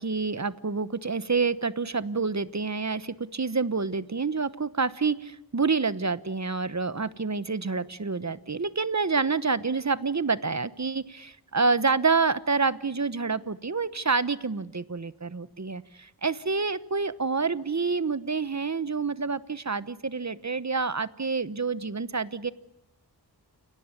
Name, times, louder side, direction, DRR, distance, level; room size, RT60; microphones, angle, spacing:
voice 1, 0.0-22.5, right 4 dB, 40° right, 16 dB, 1.1 m, -28 dB
29.5 x 17.5 x 9.7 m, 0.84 s
wide cardioid pair, 60°, 40 cm